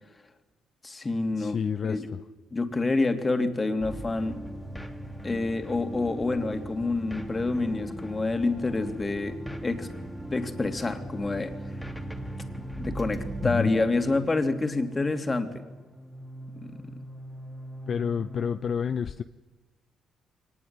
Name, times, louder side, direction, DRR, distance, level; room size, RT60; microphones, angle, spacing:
voice 1, 0.8-1.6 1.9-2.1 2.5-4.4 5.2-9.9 10.3-11.5 12.8-15.5 16.6-17.0, left 3 dB, 25° left, 6 dB, 2.9 m, -28 dB
voice 2, 1.4-2.2 13.4-13.7 17.9-19.2, left 7 dB, 50° left, 10 dB, 0.7 m, -29 dB
sound 1, 3.8-18.6, right 1 dB, ahead, 2.7 m, -39 dB
23.5 x 19.5 x 9.7 m, 1.2 s
cardioid pair, 90°, 0 cm